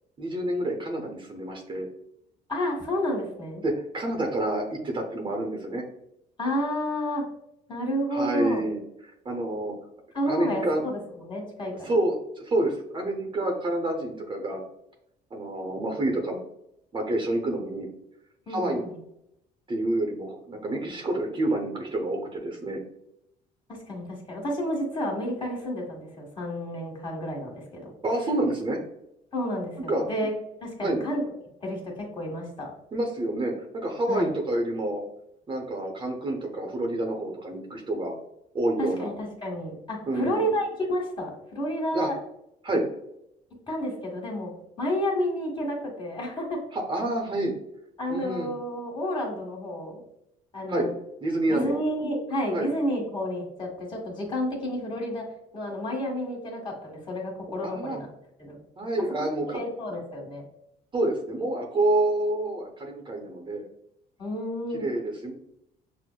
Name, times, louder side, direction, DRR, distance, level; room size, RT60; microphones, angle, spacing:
voice 1, 0.2-1.9 3.6-5.8 8.1-8.8 9.2-9.7 10.3-10.8 11.8-14.6 15.3-16.4 16.9-17.9 18.5-18.8 19.7-22.8 28.0-28.8 29.9-30.0 30.8-31.0 32.9-35.0 35.5-38.1 38.5-39.1 40.1-40.5 41.9-42.1 42.6-42.9 46.7-47.5 48.1-48.5 50.7-50.9 51.2-51.8 52.5-52.7 57.6-58.0 58.8-59.6 60.9-63.6 64.7-65.3, right 1 dB, 30° right, 2 dB, 0.7 m, -28 dB
voice 2, 2.5-3.6 6.4-7.2 7.7-8.6 10.1-11.9 18.5-19.0 23.7-27.9 29.3-30.3 30.6-31.2 31.6-32.7 34.1-34.3 38.8-42.2 43.7-44.5 44.8-46.6 48.0-50.0 50.5-50.9 51.5-55.3 55.5-58.1 58.4-58.6 59.2-59.3 59.5-60.5 64.2-64.8, equal, 30° left, -2 dB, 1.4 m, -30 dB
6.0 x 2.0 x 2.2 m, 0.80 s
cardioid pair, 110°, 17 cm